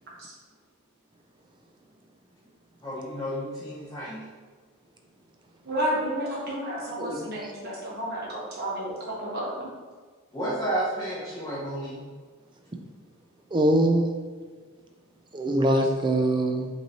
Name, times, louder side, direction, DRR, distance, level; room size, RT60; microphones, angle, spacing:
voice 1, 2.8-4.2 10.3-12.0, right 1 dB, 15° left, -8 dB, 0.7 m, -31 dB
voice 2, 5.6-8.9 9.2-9.7, equal, 45° right, -6 dB, 1.2 m, -31 dB
voice 3, 13.5-14.1 15.3-16.7, right 1 dB, 20° right, 4 dB, 0.4 m, -23 dB
5.2 x 3.2 x 2.8 m, 1.5 s
head